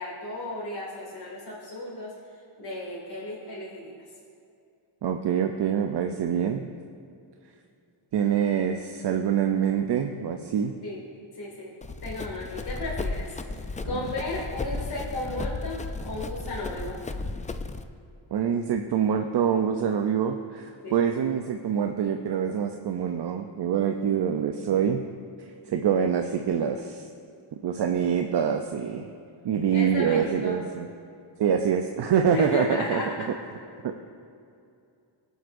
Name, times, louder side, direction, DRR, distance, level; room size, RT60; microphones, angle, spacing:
voice 1, 0.0-2.1 2.6-4.0 10.8-11.0 11.3-11.7 12.0-17.0 20.8-21.0 29.7-30.6 32.3-33.3, left 1 dB, 50° left, -7 dB, 2.3 m, -34 dB
voice 2, 5.0-6.7 8.1-10.7 13.9-14.0 18.3-25.0 25.7-27.1 27.5-29.1 29.4-30.9 31.4-33.0 33.8-33.9, right 8 dB, 55° right, 5 dB, 0.6 m, -25 dB
Run, 11.8-17.8, left 3 dB, 20° left, 0.3 m, -34 dB
20.0 x 8.1 x 2.6 m, 2.5 s
wide cardioid pair, 110°, 48 cm